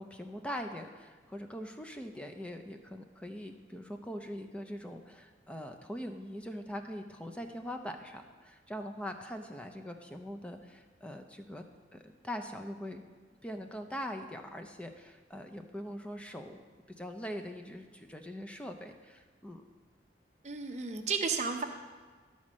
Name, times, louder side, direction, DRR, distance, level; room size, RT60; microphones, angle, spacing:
voice 1, 0.0-11.6 11.9-13.0 13.4-16.6 16.9-19.6, equal, 5° left, 4 dB, 0.5 m, -42 dB
voice 2, 20.4-21.6, right 5 dB, 40° right, 4 dB, 0.7 m, -33 dB
11.5 x 4.2 x 6.1 m, 1.4 s
head